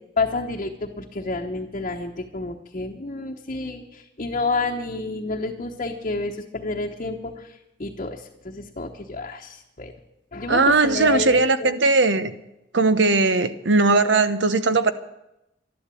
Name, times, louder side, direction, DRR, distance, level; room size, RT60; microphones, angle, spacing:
voice 1, 0.2-9.9 10.3-11.7, left 3 dB, 40° left, -1 dB, 1.1 m, -29 dB
voice 2, 10.5-12.3 12.7-14.9, right 3 dB, 70° right, 12 dB, 1.0 m, -19 dB
12.5 x 11.5 x 8.4 m, 0.87 s
head